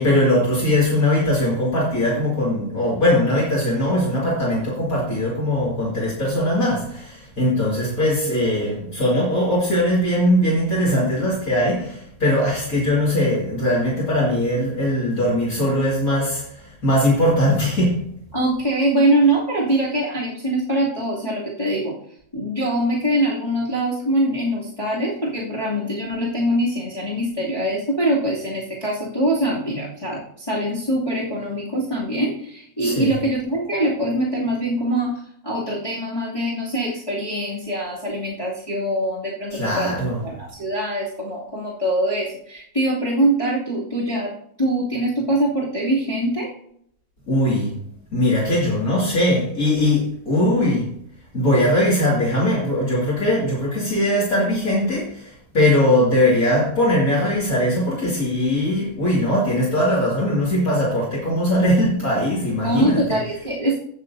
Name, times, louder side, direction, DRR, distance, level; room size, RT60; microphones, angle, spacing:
voice 1, 0.0-18.0 32.8-33.2 39.5-40.2 47.3-47.7 48.1-50.9 51.3-63.2, left 1 dB, 30° left, -6 dB, 1.8 m, -20 dB
voice 2, 18.3-21.9 22.3-39.9 40.2-46.5 62.6-63.8, right 1 dB, 15° left, -9 dB, 1.3 m, -23 dB
17.5 x 6.9 x 2.7 m, 0.71 s
omnidirectional pair, 5.1 m